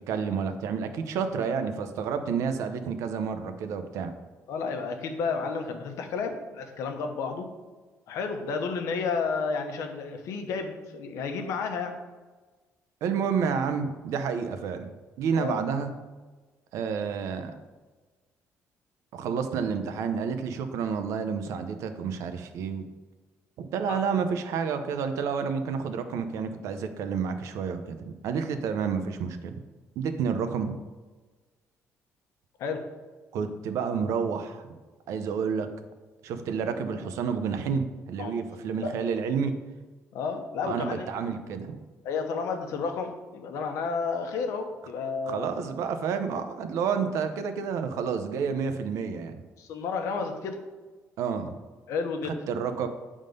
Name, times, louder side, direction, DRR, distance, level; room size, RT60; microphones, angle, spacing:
voice 1, 0.1-4.1 13.0-14.9 15.2-15.9 16.7-17.5 19.1-22.9 23.6-29.6 30.0-30.8 33.3-34.7 35.1-35.7 36.2-39.5 40.6-41.8 45.3-49.4 51.2-51.6 52.5-52.9, right 6 dB, 75° right, 8 dB, 0.7 m, -30 dB
voice 2, 4.5-7.5 8.1-12.0 15.3-15.6 23.9-24.0 32.6-32.8 38.2-38.4 38.8-38.9 40.1-41.2 42.0-45.7 49.6-50.6 51.9-52.3, left 5 dB, 70° left, 5 dB, 0.9 m, -31 dB
7.9 x 3.7 x 5.2 m, 1.3 s
cardioid pair, 170°, 5 cm